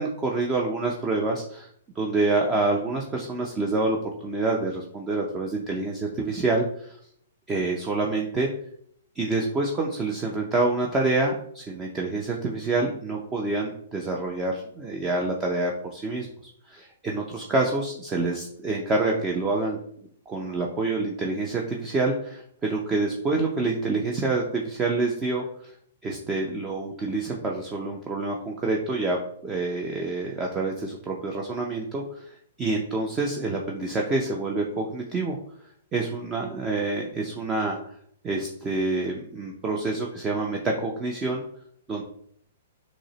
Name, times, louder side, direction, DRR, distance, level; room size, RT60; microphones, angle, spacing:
voice 1, 0.0-1.7 2.0-7.0 7.5-8.5 9.2-16.3 16.7-19.8 20.3-25.7 26.0-29.2 29.4-35.4 35.9-37.8 38.2-41.4 41.9-42.0, right 3 dB, 20° right, 0 dB, 0.6 m, -27 dB
6.1 x 2.0 x 3.0 m, 0.65 s
hypercardioid pair, 125°, 0 cm